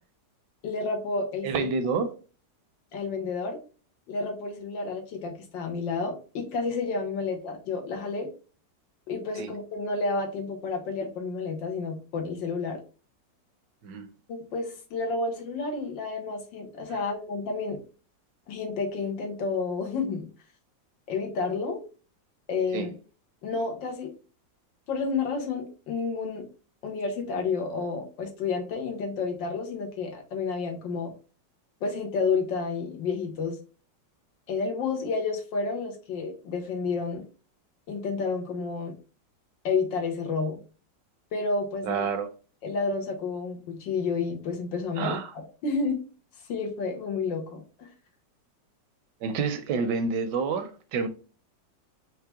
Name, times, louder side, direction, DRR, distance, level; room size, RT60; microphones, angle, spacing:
voice 1, 0.6-1.7 2.9-3.6 4.1-8.3 9.1-12.8 14.3-17.8 18.5-20.3 21.1-21.8 22.5-22.9 23.4-24.1 24.9-26.5 26.8-31.1 31.8-33.6 34.5-37.3 37.9-39.0 39.6-40.6 41.3-42.1 42.6-45.2 45.6-46.0 46.5-47.9, left 4 dB, 90° left, 1.9 m, -30 dB
voice 2, 1.4-2.1 9.4-9.5 13.8-14.1 16.9-17.0 22.7-22.9 41.8-42.3 45.0-45.3 49.2-51.1, right 5 dB, 75° right, 1.3 m, -28 dB
4.8 x 3.1 x 3.5 m
omnidirectional pair, 1.9 m